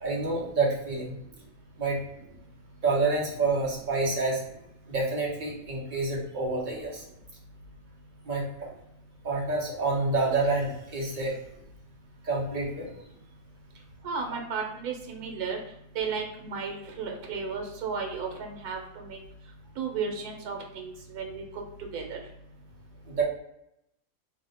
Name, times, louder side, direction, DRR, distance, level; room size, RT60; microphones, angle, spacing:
voice 1, 0.0-1.2 1.8-2.0 2.8-4.4 4.9-7.0 8.2-8.7 9.2-11.4 12.2-12.9 23.1-23.2, right 3 dB, 45° right, -4 dB, 0.7 m, -28 dB
voice 2, 14.0-15.6 15.9-19.2 19.8-21.6 21.9-22.3, right 5 dB, 90° right, 2 dB, 1.1 m, -34 dB
2.7 x 2.0 x 4.0 m, 0.80 s
omnidirectional pair, 1.6 m